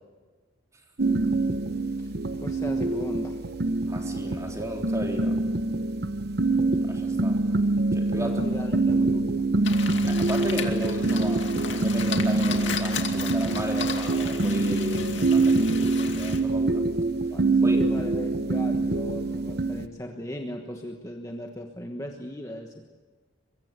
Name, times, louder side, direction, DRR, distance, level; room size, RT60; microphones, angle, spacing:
sound 1, 1.0-19.9, right 2 dB, 50° right, 0.9 m, -25 dB
voice 1, 2.0-3.5 8.2-9.5 17.3-22.9, equal, 15° left, 2 dB, 1.3 m, -37 dB
voice 2, 3.8-5.4 6.8-7.4 7.9-8.4 10.0-16.8 17.6-17.8, equal, 15° right, 1 dB, 3.6 m, -34 dB
sound 2, 9.6-16.4, left 6 dB, 65° left, 2.5 m, -35 dB
23.5 x 23.0 x 8.2 m, 1.4 s
head